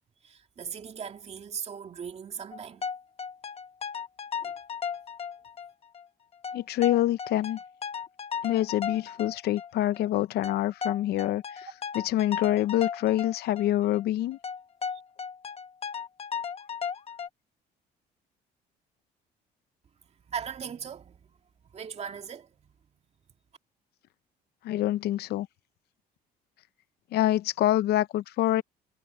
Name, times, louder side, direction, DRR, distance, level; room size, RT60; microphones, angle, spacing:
voice 1, 0.2-2.9 4.4-4.6 14.9-15.0 20.3-21.3 21.7-22.8, right 7 dB, 40° right, 2.4 m, -39 dB
sound 1, 2.5-5.7 5.9-6.0 6.4-10.0 10.4-13.7 13.9-14.0 14.4-17.3, left 6 dB, 35° left, 1.4 m, -35 dB
voice 2, 6.5-7.6 8.4-11.7 12.0-14.4 24.6-25.5 27.1-28.6, left 14 dB, 70° left, 0.7 m, -26 dB
cardioid pair, 110°, 17 cm